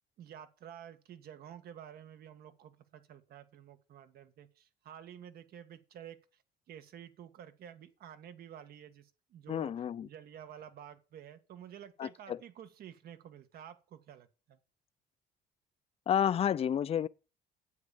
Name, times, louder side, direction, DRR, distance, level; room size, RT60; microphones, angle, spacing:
voice 1, 0.2-6.4 6.7-9.7 10.0-14.6, right 9 dB, 65° right, 1.7 m, -51 dB
voice 2, 9.5-10.1 12.0-12.4 16.1-17.1, left 9 dB, 35° left, 0.5 m, -30 dB
9.4 x 8.8 x 7.0 m
cardioid pair, 110°, 17 cm